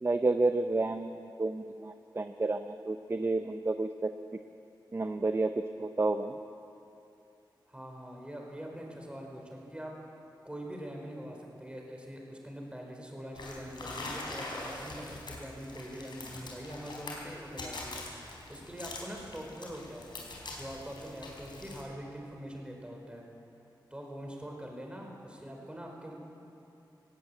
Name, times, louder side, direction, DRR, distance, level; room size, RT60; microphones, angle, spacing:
voice 1, 0.0-4.1 4.9-5.5 5.8-6.4, right 3 dB, 30° right, 8 dB, 0.7 m, -30 dB
voice 2, 7.7-9.9 10.4-18.0 18.5-20.1 20.5-23.3 23.9-26.2, equal, 15° right, 0 dB, 4.4 m, -43 dB
sound 1, 13.3-21.8, left 2 dB, 70° left, 4.4 m, -43 dB
18.0 x 17.5 x 8.4 m, 2.8 s
wide cardioid pair, 80°, 8 cm